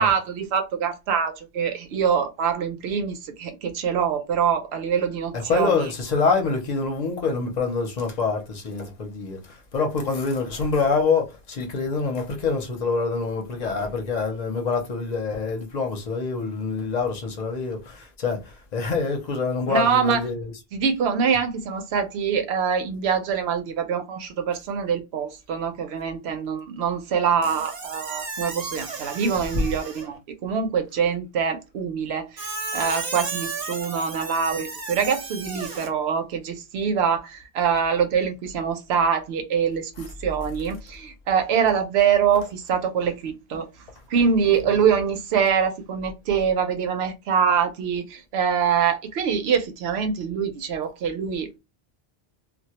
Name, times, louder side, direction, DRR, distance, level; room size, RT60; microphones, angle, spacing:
voice 1, 0.0-5.8 19.7-20.2 20.7-43.7 44.1-51.6, right 7 dB, 80° right, 0.8 m, -24 dB
voice 2, 5.3-20.5 29.5-29.6, left 4 dB, 45° left, 0.7 m, -26 dB
Squeak, 27.4-30.2 32.4-35.9, right 3 dB, 45° right, 0.7 m, -34 dB
2.2 x 2.2 x 2.8 m
omnidirectional pair, 1.1 m